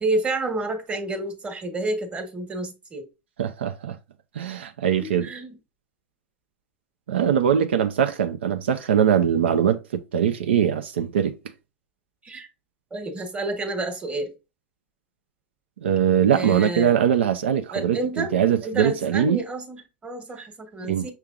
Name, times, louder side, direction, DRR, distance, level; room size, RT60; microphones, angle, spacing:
voice 1, 0.0-3.1 5.0-5.6 12.2-12.5 12.9-14.3 16.3-17.0 17.7-21.1, right 2 dB, 20° right, 1.3 m, -29 dB
voice 2, 3.4-4.0 4.3-5.3 7.1-11.3 15.8-19.4 20.8-21.1, right 9 dB, 85° right, 0.5 m, -22 dB
5.8 x 3.3 x 2.4 m
hypercardioid pair, 100°, 6 cm